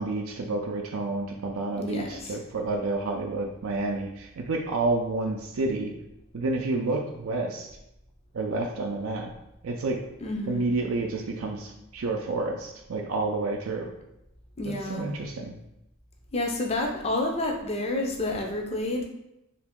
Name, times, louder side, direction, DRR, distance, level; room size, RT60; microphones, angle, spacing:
voice 1, 0.0-5.9 6.3-7.7 8.3-9.3 9.6-10.0 10.5-13.9 14.6-15.6, right 3 dB, 85° right, 2 dB, 0.4 m, -29 dB
voice 2, 1.8-2.2 10.2-10.7 14.6-15.0 16.3-19.0, left 2 dB, 30° left, 1 dB, 0.4 m, -29 dB
2.8 x 2.6 x 3.5 m, 0.86 s
head